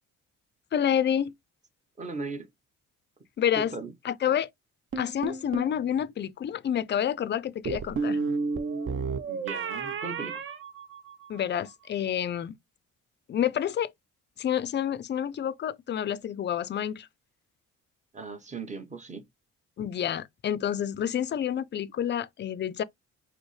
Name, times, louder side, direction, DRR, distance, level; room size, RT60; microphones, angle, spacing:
voice 1, 0.7-1.3 3.4-3.7 4.0-4.5 5.0-8.2 11.3-12.5 13.3-13.9 14.4-17.1 19.8-22.8, left 9 dB, 35° left, 0.4 m, -28 dB
voice 2, 2.0-2.5 3.5-3.9 9.3-10.4 18.1-19.2, right 3 dB, 25° right, 1.1 m, -38 dB
sound 1, 4.9-5.8 7.7-11.4, right 4 dB, 40° right, 0.6 m, -32 dB
5.0 x 2.1 x 3.2 m
cardioid pair, 90°, 30 cm